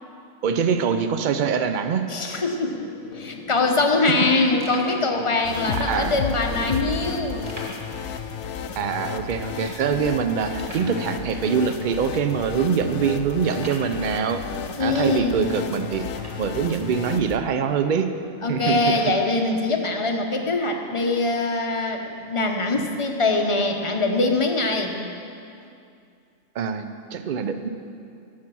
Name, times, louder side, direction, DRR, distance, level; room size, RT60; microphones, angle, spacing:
voice 1, 0.4-2.0 5.8-6.1 8.8-14.4 14.8-16.1 16.4-18.1 18.5-18.8 26.5-26.9 27.1-27.7, right 6 dB, 70° right, 8 dB, 0.4 m, -24 dB
sound 1, 2.1-7.1, left 4 dB, 85° left, 1.4 m, -40 dB
voice 2, 2.1-2.9 3.1-7.5 14.8-15.5 18.4-25.0, left 3 dB, 30° left, 3 dB, 0.6 m, -23 dB
sound 2, 4.6-5.1 5.9-6.0 7.5-8.0 8.3-8.4 8.9-9.0 9.6-9.7 10.6-11.0 11.8-11.9 12.5-12.6 13.5-14.0 16.1-16.7 17.4-17.5 18.8-19.3, right 1 dB, 30° right, 1.4 m, -41 dB
sound 3, 5.4-17.4, left 6 dB, 65° left, 0.8 m, -32 dB
13.5 x 5.9 x 6.0 m, 2.5 s
omnidirectional pair, 1.4 m